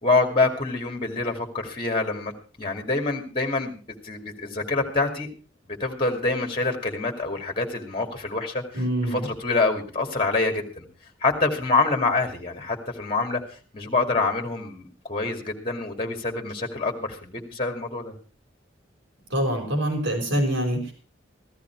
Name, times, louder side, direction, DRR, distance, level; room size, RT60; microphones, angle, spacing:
voice 1, 0.0-5.3 5.7-8.6 9.1-10.8 11.2-13.4 13.7-18.1, left 3 dB, 25° left, 4 dB, 2.5 m, -26 dB
voice 2, 8.7-9.3 19.3-20.9, equal, 75° right, 1 dB, 5.2 m, -25 dB
15.5 x 14.0 x 4.7 m, 0.36 s
head